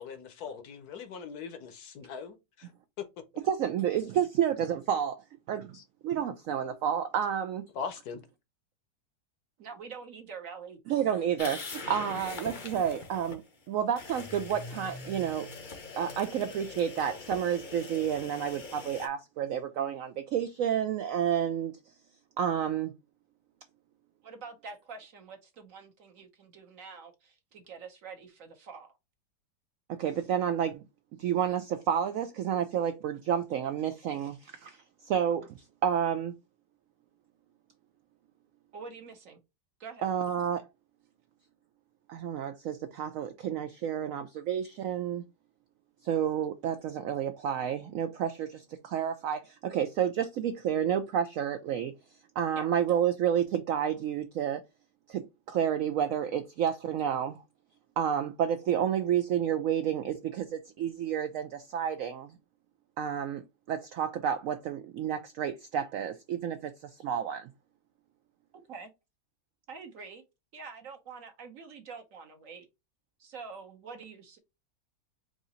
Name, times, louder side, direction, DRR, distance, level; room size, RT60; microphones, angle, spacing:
voice 1, 0.0-2.7 5.7-5.8 7.7-8.2, left 6 dB, 65° left, 1.2 m, -41 dB
voice 2, 3.4-5.8 6.0-7.6 10.9-13.4 13.7-15.5 16.0-21.7 22.4-22.9 29.9-30.8 31.2-36.3 40.0-40.6 42.1-45.2 46.0-51.9 52.4-54.6 55.1-57.4 58.0-62.3 63.0-67.5, right 9 dB, 75° right, 0.7 m, -30 dB
voice 3, 9.6-10.8 24.2-28.9 38.7-39.4 39.8-40.1 52.6-52.7 68.7-68.9 69.7-70.2 70.5-72.7 73.2-74.4, right 5 dB, 55° right, 1.2 m, -46 dB
sound 1, 11.4-13.4 14.0-19.1, left 3 dB, 45° left, 0.6 m, -42 dB
4.8 x 2.6 x 4.1 m
omnidirectional pair, 1.9 m